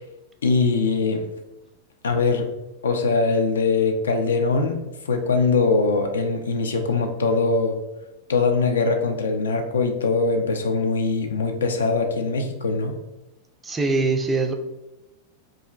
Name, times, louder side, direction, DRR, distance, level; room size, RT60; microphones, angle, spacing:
voice 1, 0.4-1.3 2.0-2.5 2.8-4.8 5.1-7.8 8.3-13.0, left 4 dB, 65° left, 5 dB, 0.3 m, -22 dB
voice 2, 13.6-14.5, right 3 dB, 15° right, 4 dB, 0.3 m, -22 dB
2.8 x 2.4 x 2.3 m, 0.99 s
figure-of-eight pair, 90°, 0 cm